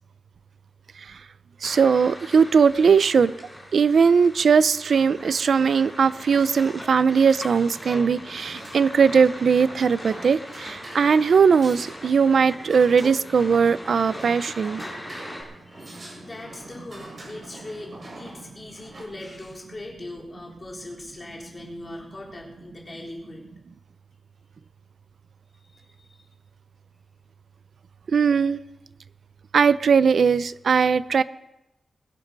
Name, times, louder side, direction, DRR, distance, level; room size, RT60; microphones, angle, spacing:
sound 1, 1.6-15.4, left 1 dB, 5° left, 5.8 m, -41 dB
voice 1, 1.6-3.3 3.7-14.8 28.1-28.6 29.5-31.2, right 6 dB, 60° right, 15 dB, 0.6 m, -19 dB
sound 2, 7.3-19.0, right 1 dB, 45° right, 7.0 m, -44 dB
voice 2, 15.6-23.5 25.7-26.1, left 1 dB, 25° left, -2 dB, 3.9 m, -40 dB
21.5 x 11.5 x 5.5 m, 0.91 s
wide cardioid pair, 135°, 0 cm